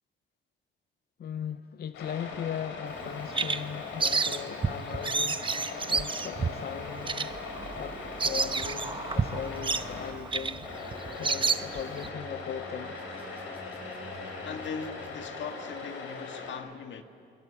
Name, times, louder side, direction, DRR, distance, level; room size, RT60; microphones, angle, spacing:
voice 1, 1.2-7.4 7.8-8.0 8.2-10.7 11.2-13.0, left 9 dB, 50° left, 0.6 m, -38 dB
sound 1, 1.9-10.1 10.6-16.5, left 4 dB, 90° left, 4.3 m, -40 dB
Bird vocalization bird call bird song, 2.9-12.1, right 4 dB, 25° right, 0.9 m, -31 dB
sound 2, 7.2-15.3, right 2 dB, 10° right, 6.9 m, -47 dB
voice 2, 14.4-17.0, left 6 dB, 70° left, 1.8 m, -39 dB
29.5 x 21.5 x 8.5 m
cardioid pair, 90°, 20 cm